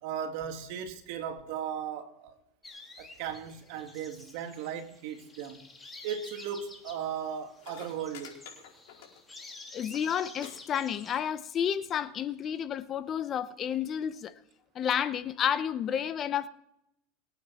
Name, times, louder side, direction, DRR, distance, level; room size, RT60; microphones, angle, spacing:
voice 1, 0.0-2.4 3.0-5.7 6.0-8.4, right 8 dB, 60° right, 2.5 m, -37 dB
sound 1, 2.6-11.2, left 3 dB, 10° left, 2.4 m, -50 dB
sound 2, 7.3-7.4 7.6-9.5 9.8-10.0 10.4-10.5 10.8-11.3 12.1-12.2, left 9 dB, 75° left, 4.7 m, -49 dB
voice 2, 9.7-14.3 14.7-16.5, left 8 dB, 30° left, 0.8 m, -31 dB
24.0 x 9.3 x 4.3 m
supercardioid pair, 135°, 0 cm